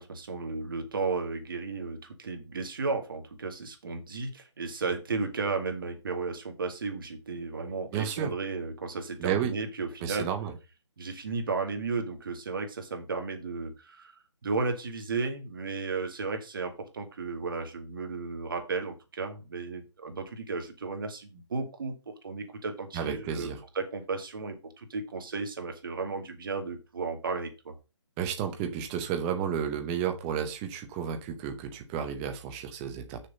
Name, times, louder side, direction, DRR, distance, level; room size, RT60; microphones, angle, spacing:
voice 1, 0.0-10.3 11.0-21.9 22.2-23.5 23.8-27.7, right 4 dB, 45° right, 5 dB, 2.1 m, -34 dB
voice 2, 7.9-8.3 9.2-9.5 10.0-10.5 22.9-23.6 28.2-33.2, right 8 dB, 10° right, 6 dB, 0.7 m, -32 dB
6.6 x 5.9 x 5.5 m, 0.28 s
hypercardioid pair, 170°, 16 cm